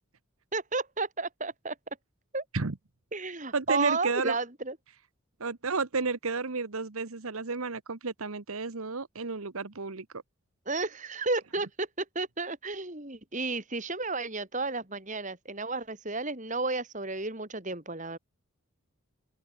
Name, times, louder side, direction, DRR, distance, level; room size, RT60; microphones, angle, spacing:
voice 1, 0.5-1.8 2.3-2.4 3.1-4.8 10.7-18.2, right 3 dB, 35° right, 3.0 m, -32 dB
voice 2, 3.5-4.3 5.4-10.0, right 4 dB, 75° right, 1.2 m, -32 dB
open air
head